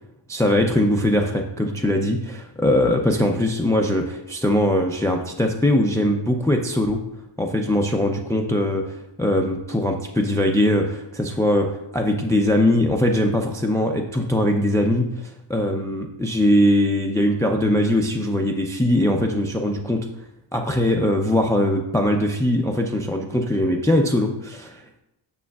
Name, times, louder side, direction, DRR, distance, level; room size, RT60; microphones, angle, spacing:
voice 1, 0.3-7.0 7.4-20.1 20.5-25.0, left 1 dB, 5° left, 3 dB, 0.4 m, -21 dB
8.5 x 6.9 x 2.3 m, 0.90 s
wide cardioid pair, 135°, 49 cm